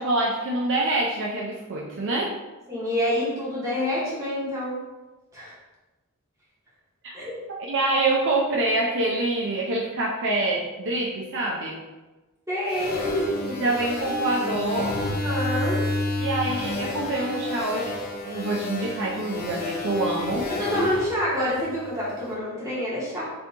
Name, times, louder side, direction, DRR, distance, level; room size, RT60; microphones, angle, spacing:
voice 1, 0.0-2.3 7.0-7.1 7.7-11.8 13.6-15.0 16.2-18.0 18.2-20.5, right 2 dB, 60° right, -2 dB, 0.5 m, -26 dB
voice 2, 2.7-4.8 5.3-5.5 7.1-7.3 12.5-13.8 15.1-15.8 20.5-23.2, equal, 15° right, -8 dB, 1.5 m, -27 dB
sound 1, 12.7-22.1, left 2 dB, 45° left, 0.8 m, -30 dB
5.4 x 2.8 x 2.9 m, 1.2 s
head